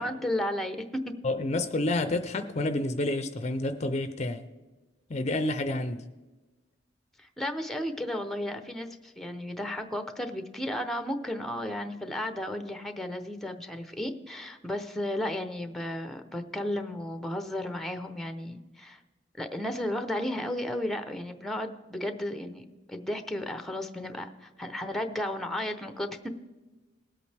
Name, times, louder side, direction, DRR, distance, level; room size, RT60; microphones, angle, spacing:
voice 1, 0.0-1.1 7.2-19.0 19.4-26.3, left 1 dB, ahead, 0.7 m, -34 dB
voice 2, 1.2-4.5 5.1-6.1, left 2 dB, 35° left, 0.5 m, -29 dB
19.5 x 8.3 x 3.4 m
head